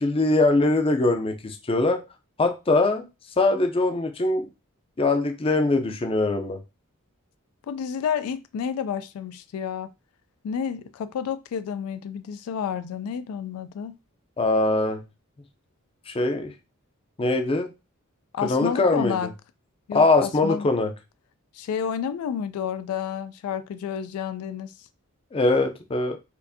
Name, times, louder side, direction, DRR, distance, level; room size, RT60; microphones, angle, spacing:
voice 1, 0.0-2.0 2.4-3.0 3.4-4.5 5.0-6.6 14.4-15.0 16.1-16.5 17.2-17.7 18.4-19.3 19.9-20.9 25.3-26.2, left 2 dB, 25° left, 0.5 m, -22 dB
voice 2, 7.7-9.9 10.4-13.9 18.3-19.3 19.9-20.7 21.5-24.9, left 7 dB, 80° left, 0.3 m, -30 dB
4.3 x 2.5 x 2.7 m
head